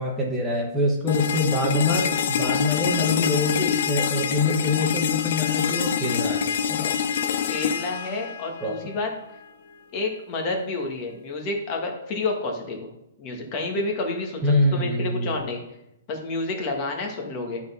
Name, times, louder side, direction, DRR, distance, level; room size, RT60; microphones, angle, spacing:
voice 1, 0.0-6.9 8.6-8.8 14.4-15.3, left 2 dB, 5° right, -3 dB, 1.1 m, -25 dB
sound 1, 1.1-9.0, left 8 dB, 55° left, 0.6 m, -26 dB
voice 2, 7.4-9.1 9.9-12.9 13.2-15.6 16.1-17.6, left 3 dB, 25° left, 1 dB, 1.6 m, -29 dB
11.5 x 4.2 x 5.5 m, 0.85 s
hypercardioid pair, 170°, 0 cm